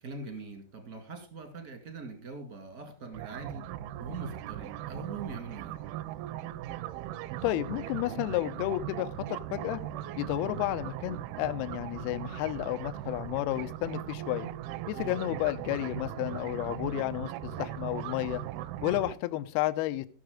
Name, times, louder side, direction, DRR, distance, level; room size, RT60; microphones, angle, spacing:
voice 1, 0.0-3.6 4.0-5.8 15.0-15.3, right 4 dB, 40° right, 6 dB, 1.1 m, -42 dB
sound 1, 3.1-19.1, right 13 dB, 80° right, 2.3 m, -39 dB
voice 2, 7.4-9.8 10.2-14.5 14.9-18.4 18.8-20.1, left 17 dB, 80° left, 11 dB, 2.5 m, -32 dB
15.0 x 6.6 x 5.0 m, 0.37 s
omnidirectional pair, 4.8 m